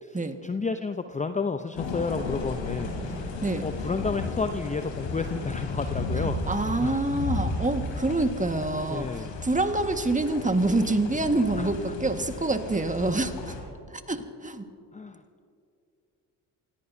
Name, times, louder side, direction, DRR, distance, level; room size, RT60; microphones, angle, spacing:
voice 1, 0.0-3.3 3.6-6.4 6.8-7.0 8.9-9.3 11.6-11.7 14.9-15.2, left 4 dB, 15° left, 9 dB, 0.7 m, -31 dB
sound 1, 1.7-13.6, left 2 dB, 75° left, 3.2 m, -34 dB
voice 2, 6.1-13.5 13.9-14.7, right 2 dB, 15° right, 7 dB, 1.7 m, -27 dB
28.0 x 17.0 x 2.8 m, 2.4 s
hypercardioid pair, 45°, 46 cm